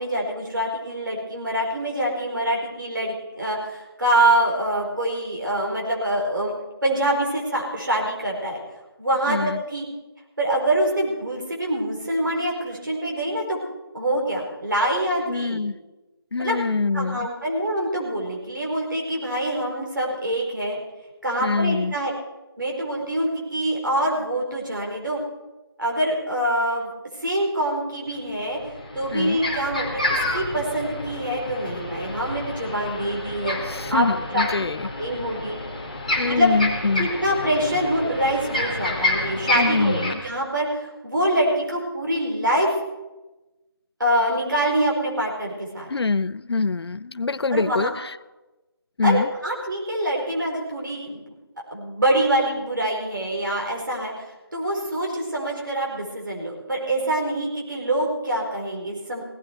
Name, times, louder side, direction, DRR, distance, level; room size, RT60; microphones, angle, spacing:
voice 1, 0.0-6.5 6.8-8.6 9.0-9.9 10.4-13.6 13.9-15.6 16.4-16.6 16.9-20.8 21.2-22.1 22.6-25.2 25.8-26.9 27.2-28.6 28.9-34.0 34.3-34.5 35.0-35.6 36.2-36.5 37.0-42.7 44.0-45.9 47.5-47.9 49.0-51.2 51.7-59.2, right 1 dB, 55° right, -2 dB, 4.6 m, -25 dB
voice 2, 9.3-9.6 15.3-15.7 16.3-17.3 21.4-21.9 29.1-29.4 33.6-34.9 36.2-37.1 39.5-40.2 45.9-48.1 49.0-49.3, left 4 dB, 90° left, 19 dB, 0.5 m, -24 dB
sound 1, 28.1-28.2 28.5-40.1, left 1 dB, 20° left, 1.4 m, -29 dB
17.0 x 13.5 x 4.6 m, 1.1 s
figure-of-eight pair, 180°, 13 cm